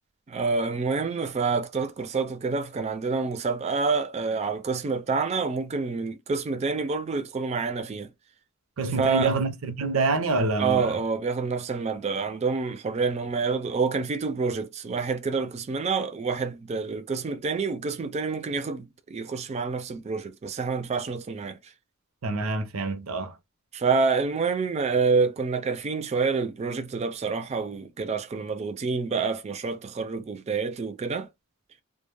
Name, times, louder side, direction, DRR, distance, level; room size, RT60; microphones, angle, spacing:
voice 1, 0.3-8.1 9.0-9.3 10.6-21.6 23.7-31.3, right 4 dB, 30° right, 0.3 m, -27 dB
voice 2, 8.8-11.0 22.2-23.4, right 3 dB, 90° right, 0.5 m, -26 dB
2.1 x 2.0 x 3.2 m
head